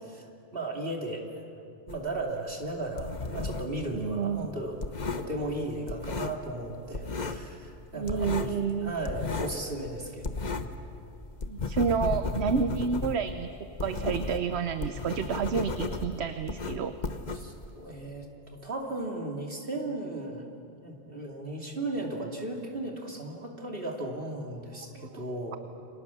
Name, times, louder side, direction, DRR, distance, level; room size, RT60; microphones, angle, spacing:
voice 1, 0.5-1.5 1.9-4.8 5.1-8.3 8.8-10.3 17.3-20.5 20.8-25.6, right 2 dB, 55° right, 1 dB, 3.1 m, -36 dB
sound 1, 1.9-3.8 4.1-6.6 6.9-7.5 7.8-10.8 11.2-17.9, left 4 dB, 40° left, 1.2 m, -34 dB
voice 2, 3.9-4.4 7.9-9.0 11.5-13.5 13.8-17.0 25.0-25.2, right 6 dB, 75° right, 9 dB, 1.1 m, -29 dB
29.0 x 25.0 x 7.1 m, 2.6 s
omnidirectional pair, 1.1 m